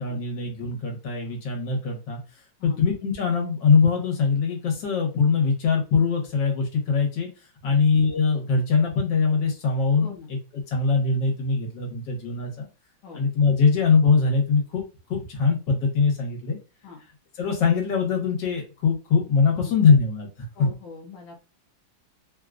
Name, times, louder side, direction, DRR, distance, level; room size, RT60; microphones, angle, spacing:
voice 1, 0.0-2.2 2.6-7.3 7.6-10.4 10.7-12.7 13.1-14.8 15.1-16.6 17.4-20.5, left 5 dB, 70° left, 1 dB, 1.8 m, -22 dB
voice 2, 10.0-10.3 13.0-13.2 16.8-17.0 19.5-19.7 20.5-21.4, left 5 dB, 90° left, -1 dB, 1.4 m, -43 dB
3.8 x 2.4 x 2.3 m, 0.31 s
omnidirectional pair, 2.0 m